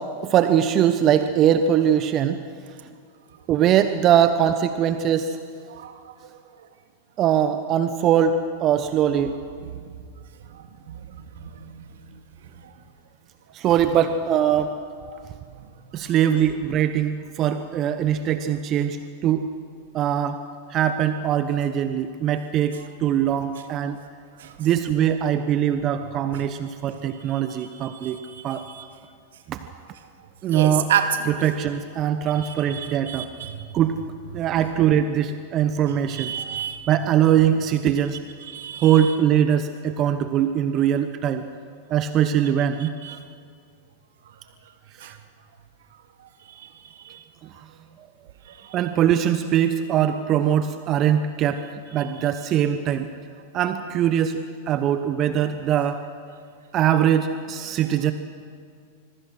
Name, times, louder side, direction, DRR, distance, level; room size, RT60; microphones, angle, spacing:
voice 1, 0.2-2.4 3.5-5.4 7.2-8.4 8.6-9.3 13.5-14.7 15.9-19.4 19.9-20.4 20.7-24.0 24.6-28.2 28.4-28.6 29.5-29.6 30.4-30.9 31.4-33.3 33.7-33.9 34.3-36.3 36.9-38.2 38.8-41.4 41.9-42.9 45.0-45.2 48.7-51.6 51.9-53.1 53.5-54.4 54.7-56.0 56.7-58.1, right 10 dB, 40° right, 9 dB, 1.0 m, -21 dB
voice 2, 5.7-6.2 9.2-9.8 10.5-12.0 12.6-12.7 15.1-15.2 15.5-15.7 22.7-22.9 23.6-23.7 24.4-24.5 26.3-26.4 27.1-28.9 30.5-31.4 32.3-33.7 34.4-34.6 36.1-36.9 38.4-39.2 42.8-43.2 45.0-45.1 46.5-47.2 48.5-48.8 52.0-52.2, right 8 dB, 70° right, 6 dB, 2.1 m, -32 dB
25.5 x 22.0 x 6.2 m, 2.2 s
hypercardioid pair, 95°, 0 cm